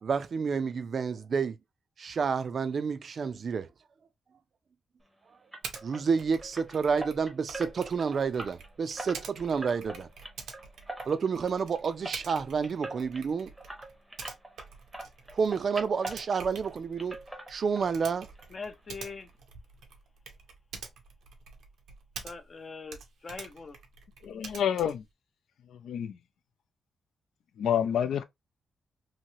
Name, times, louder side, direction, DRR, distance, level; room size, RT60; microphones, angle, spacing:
voice 1, 0.0-1.6 2.0-3.7 5.8-10.1 11.1-13.5 15.3-17.2 17.5-18.3, right 5 dB, 45° right, 0.4 m, -29 dB
sound 1, 5.5-14.7 14.9-16.7 17.0-18.1 18.4-18.5 18.9-19.0 19.3-19.4, right 2 dB, 10° right, 0.7 m, -43 dB
Typing, 5.6-5.8 6.2-22.6 22.9-25.1, right 5 dB, 90° right, 0.7 m, -47 dB
voice 2, 18.5-19.3 22.2-23.8, left 4 dB, 35° left, 0.5 m, -42 dB
voice 3, 24.2-25.0 25.8-26.2 27.6-28.2, left 9 dB, 85° left, 0.5 m, -28 dB
2.9 x 2.7 x 2.7 m
wide cardioid pair, 160°, 0 cm